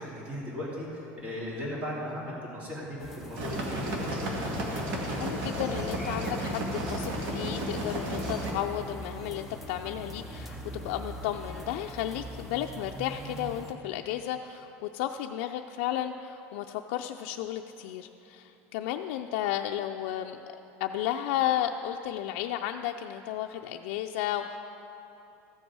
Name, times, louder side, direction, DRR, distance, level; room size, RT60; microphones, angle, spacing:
voice 1, 0.0-4.5, equal, 25° right, -5 dB, 2.3 m, -37 dB
sound 1, 3.0-13.7, equal, 5° right, 0.8 m, -42 dB
sound 2, 3.3-8.5, right 1 dB, 65° right, 1.8 m, -33 dB
voice 2, 5.1-20.4 20.8-24.6, left 11 dB, 80° left, 3 dB, 0.4 m, -33 dB
14.0 x 8.0 x 4.7 m, 3.0 s
cardioid pair, 175°, 6 cm